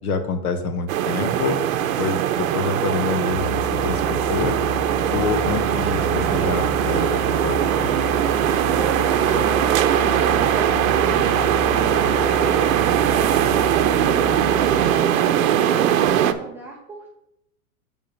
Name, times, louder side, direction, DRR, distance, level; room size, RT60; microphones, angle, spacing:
voice 1, 0.0-1.6 2.0-4.6 5.1-7.9 11.1-11.5, left 4 dB, 80° left, 8 dB, 1.2 m, -27 dB
sound 1, 0.9-16.3, right 10 dB, 65° right, 0.7 m, -20 dB
sound 2, 2.5-12.6, right 1 dB, 45° left, 1.1 m, -38 dB
Musical instrument, 3.3-15.0, left 2 dB, 60° left, 2.7 m, -31 dB
voice 2, 8.7-10.7 11.7-12.4 13.1-17.1, right 3 dB, 5° right, -4 dB, 0.3 m, -35 dB
6.7 x 3.6 x 5.8 m, 0.80 s
hypercardioid pair, 125°, 44 cm